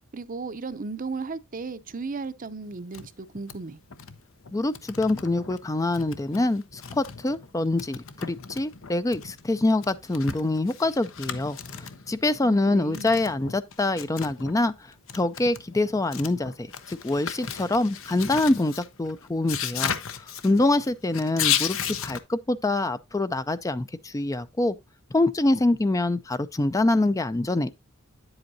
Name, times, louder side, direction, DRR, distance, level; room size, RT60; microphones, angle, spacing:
voice 1, 0.1-3.8 12.4-13.1, right 4 dB, 40° right, 0.6 m, -35 dB
sound 1, 2.7-3.1 3.3-3.6 3.9-4.2 4.4-5.6 5.9-7.5 7.8-12.2 12.9-14.6 14.9-22.2, left 8 dB, 75° left, 0.9 m, -34 dB
voice 2, 4.5-14.7 15.1-19.9 20.4-21.8 22.0-24.7 25.1-27.7, left 2 dB, 15° left, 0.4 m, -25 dB
9.4 x 7.9 x 2.7 m
head